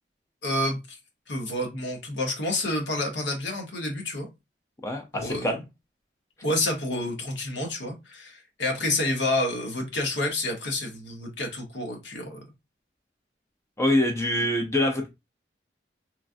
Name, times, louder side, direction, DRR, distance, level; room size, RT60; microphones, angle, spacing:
voice 1, 0.4-1.0 1.3-4.3 5.1-5.6 6.4-12.4, left 1 dB, 85° left, 1.0 m, -29 dB
voice 2, 4.8-5.6 13.8-15.1, left 1 dB, 15° left, 0.4 m, -25 dB
3.1 x 2.4 x 2.5 m
head